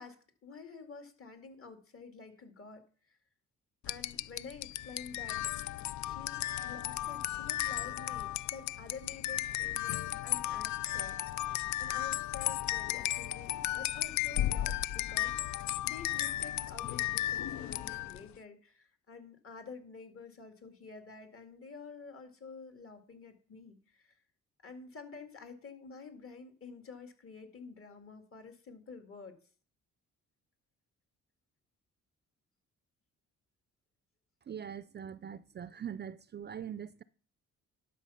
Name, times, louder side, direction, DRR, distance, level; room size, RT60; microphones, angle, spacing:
voice 1, 0.0-2.9 3.8-5.4 6.0-11.2 11.5-24.2 24.6-29.4, left 4 dB, 45° left, 2.3 m, -49 dB
sound 1, 3.8-18.3, left 13 dB, 70° left, 0.5 m, -35 dB
voice 2, 34.5-37.0, right 8 dB, 35° right, 0.4 m, -42 dB
11.5 x 5.8 x 5.6 m
cardioid pair, 90°, 30 cm